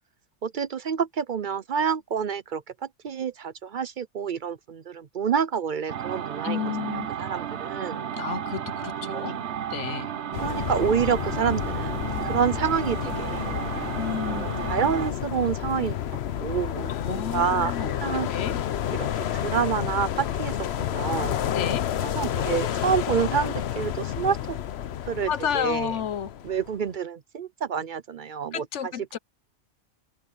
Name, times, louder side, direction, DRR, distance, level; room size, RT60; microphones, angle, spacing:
voice 1, 0.4-2.6 3.0-8.1 9.1-9.3 10.4-13.6 14.3-16.0 16.4-18.3 18.9-19.1 19.3-21.4 22.0-24.6 25.1-26.0 26.4-28.9, right 7 dB, 50° right, 0.7 m, -28 dB
sound 1, 5.9-15.1, right 9 dB, 75° right, 1.1 m, -33 dB
voice 2, 6.4-7.1 8.2-9.4 9.7-10.1 14.0-14.4 16.9-17.9 18.3-18.6 21.5-21.9 25.3-26.3 28.5-29.2, left 8 dB, 85° left, 1.2 m, -31 dB
sound 2, 10.3-26.9, left 10 dB, 70° left, 0.9 m, -30 dB
open air
omnidirectional pair, 1.2 m